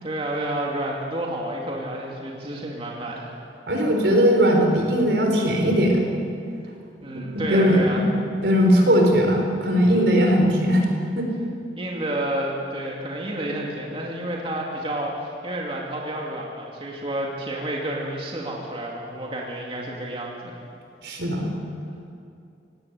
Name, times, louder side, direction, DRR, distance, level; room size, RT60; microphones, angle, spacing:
voice 1, 0.0-3.3 7.0-8.1 11.8-20.5, right 1 dB, 30° right, -2 dB, 2.4 m, -30 dB
voice 2, 3.7-6.0 7.3-8.0 8.4-10.8 11.2-11.3 21.0-21.5, equal, 80° right, 2 dB, 4.2 m, -19 dB
18.0 x 17.5 x 8.5 m, 2.5 s
head